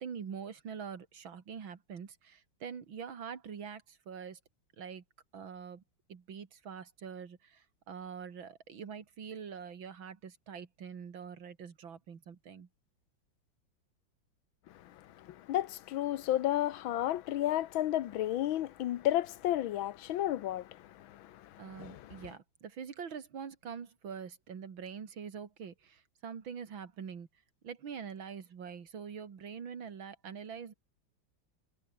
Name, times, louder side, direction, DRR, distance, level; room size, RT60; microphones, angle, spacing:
voice 1, 0.0-4.4 4.8-5.0 5.3-5.8 6.1-12.7 21.6-27.3 27.6-30.7, right 7 dB, 80° right, 2.9 m, -44 dB
voice 2, 14.8-22.3, left 13 dB, 80° left, 1.6 m, -33 dB
omnidirectional pair, 2.1 m